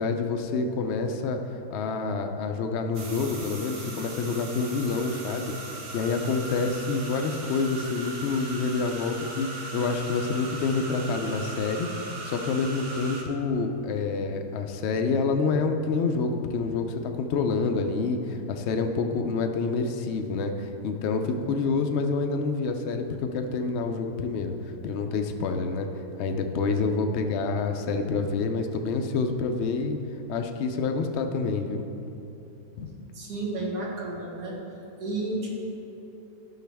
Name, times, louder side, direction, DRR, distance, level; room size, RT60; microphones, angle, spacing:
voice 1, 0.0-1.4 1.7-5.5 5.9-25.9 26.2-30.0 30.3-31.8 32.8-32.9, left 4 dB, 70° left, 5 dB, 0.6 m, -27 dB
sound 1, 2.9-13.2, right 2 dB, 45° right, 0.8 m, -39 dB
voice 2, 33.1-34.6 35.0-35.5, right 2 dB, 75° right, -3 dB, 2.0 m, -31 dB
11.5 x 6.4 x 3.4 m, 2.9 s
omnidirectional pair, 1.8 m